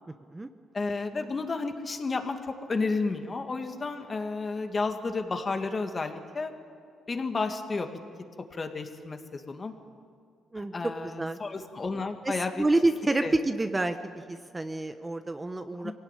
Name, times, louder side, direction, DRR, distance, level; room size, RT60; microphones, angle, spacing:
voice 1, 0.7-2.4 2.7-6.5 7.1-7.9 8.5-9.7 10.6-12.6 13.2-13.3 15.8-15.9, left 3 dB, 35° left, 6 dB, 2.1 m, -32 dB
voice 2, 11.0-11.4 12.2-15.9, right 2 dB, 20° right, 8 dB, 1.0 m, -28 dB
23.0 x 17.5 x 9.3 m, 2.3 s
cardioid pair, 90°, 0 cm